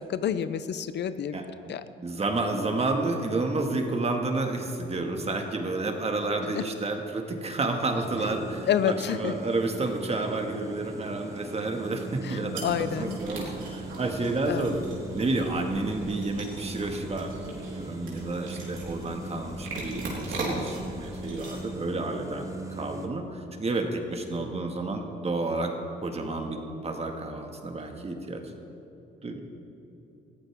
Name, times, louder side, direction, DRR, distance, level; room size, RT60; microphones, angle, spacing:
voice 1, 0.0-1.4 1.7-1.8 6.5-6.6 8.7-9.3 12.2-13.2 14.4-14.7, left 9 dB, 60° left, 13 dB, 0.6 m, -29 dB
voice 2, 1.3-1.8 2.0-14.9 15.1-25.7 26.0-28.4 29.2-29.4, right 2 dB, 30° right, 3 dB, 1.8 m, -30 dB
sound 1, 8.0-23.1, right 2 dB, 15° right, 1.4 m, -40 dB
sound 2, 12.5-21.7, right 2 dB, 75° right, 4.1 m, -39 dB
20.0 x 14.5 x 3.6 m, 2.9 s
cardioid pair, 90°, 20 cm